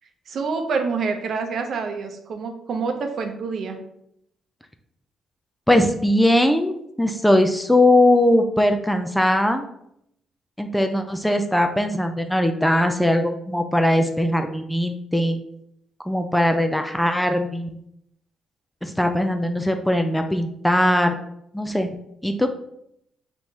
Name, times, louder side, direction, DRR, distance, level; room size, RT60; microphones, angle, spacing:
voice 1, 0.3-3.8, right 4 dB, 60° right, 5 dB, 0.7 m, -27 dB
voice 2, 5.7-9.6 10.6-15.4 16.1-17.8 18.8-21.1 21.5-21.9 22.2-22.5, left 1 dB, 5° left, 6 dB, 0.4 m, -20 dB
3.6 x 3.0 x 4.1 m, 0.75 s
cardioid pair, 90°, 0 cm